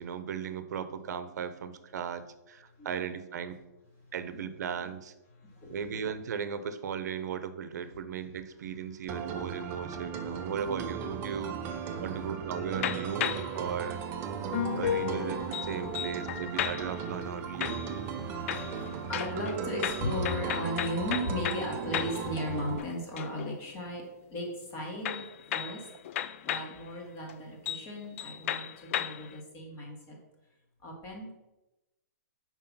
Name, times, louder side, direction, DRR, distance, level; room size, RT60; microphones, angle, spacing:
voice 1, 0.0-3.6 4.1-5.1 5.7-14.0 14.7-17.8, right 7 dB, 70° right, 12 dB, 0.8 m, -37 dB
voice 2, 5.4-5.7 10.4-10.5 11.9-12.3 13.7-13.8 14.3-15.1 15.7-15.9 16.6-16.7 17.8-24.0 24.3-25.2 25.5-25.8 26.4-30.2 30.8-31.4, left 1 dB, 25° left, 0 dB, 1.8 m, -37 dB
sound 1, 9.1-22.8, right 7 dB, 25° right, 0.6 m, -37 dB
sound 2, 12.7-13.6 14.5-17.1 17.6-18.2 18.5-22.3 22.7-23.6 25.0-26.8 27.3-27.4 27.7-27.9 28.2-29.3, left 10 dB, 45° left, 0.4 m, -34 dB
5.6 x 4.9 x 5.5 m, 1.0 s
hypercardioid pair, 155°, 9 cm